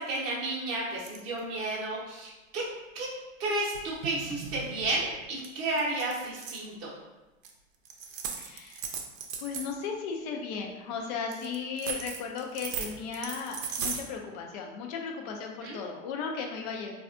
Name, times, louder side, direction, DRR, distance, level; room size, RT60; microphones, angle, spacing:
voice 1, 0.0-2.6 2.9-3.1 3.4-6.9 15.6-15.8, right 2 dB, 35° right, -6 dB, 0.7 m, -32 dB
sound 1, 1.0-1.4 3.7-5.1 5.4-5.5 5.8-6.7 7.4-7.5 7.8-9.7 11.3-14.0, right 6 dB, 70° right, 0.6 m, -37 dB
voice 2, 8.4-8.9 9.4-16.9, left 5 dB, 30° left, 2 dB, 0.4 m, -36 dB
3.3 x 2.3 x 2.4 m, 1.1 s
hypercardioid pair, 120°, 41 cm